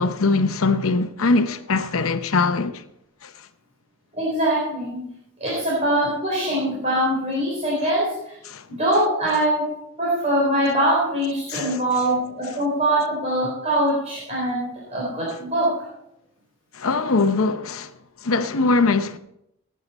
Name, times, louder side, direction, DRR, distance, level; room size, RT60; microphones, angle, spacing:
voice 1, 0.0-2.8 3.2-3.3 8.5-8.6 11.5-11.8 16.7-17.9 18.2-19.2, left 3 dB, 80° left, 0.8 m, -21 dB
voice 2, 4.1-5.0 5.4-8.4 8.7-9.7 10.0-15.9, right 1 dB, 30° right, 3.9 m, -23 dB
17.5 x 9.4 x 4.2 m
head